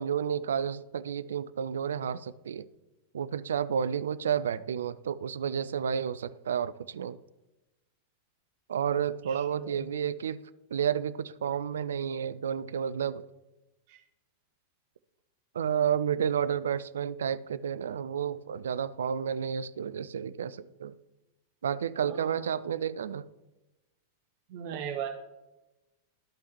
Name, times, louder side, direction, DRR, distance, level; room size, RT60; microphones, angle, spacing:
voice 1, 0.0-2.7 3.1-7.2 8.7-10.4 10.7-13.2 15.5-20.9 21.6-23.2, right 8 dB, 65° right, 16 dB, 0.3 m, -31 dB
voice 2, 9.2-9.8 13.9-14.0 22.0-22.7 24.5-25.1, right 9 dB, 50° right, 3 dB, 0.7 m, -39 dB
13.0 x 5.3 x 3.1 m, 1.0 s
figure-of-eight pair, 90°, 0 cm